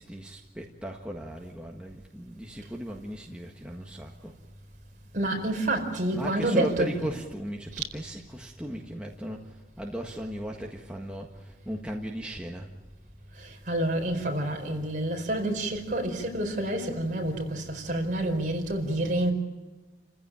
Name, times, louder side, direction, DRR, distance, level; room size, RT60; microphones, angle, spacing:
voice 1, 0.0-4.3 6.1-12.7, right 1 dB, 5° right, 1.6 m, -37 dB
voice 2, 5.1-7.0 7.7-7.8 13.4-19.3, right 1 dB, 45° right, 4.8 m, -28 dB
29.5 x 15.5 x 9.0 m
head